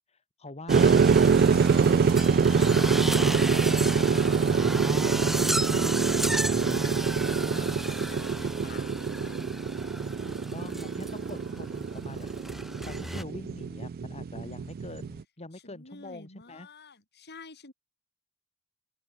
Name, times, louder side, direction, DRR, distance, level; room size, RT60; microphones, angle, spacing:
voice 1, 0.1-1.0 1.5-4.6 7.4-7.8 10.3-12.3 12.9-16.7, left 2 dB, 30° left, 2.1 m, -44 dB
sound 1, 0.7-13.2, equal, ahead, 0.6 m, -34 dB
sound 2, 0.7-15.2, right 5 dB, 45° right, 0.3 m, -25 dB
voice 2, 5.7-9.4 15.5-17.7, left 3 dB, 50° left, 5.2 m, -49 dB
open air
head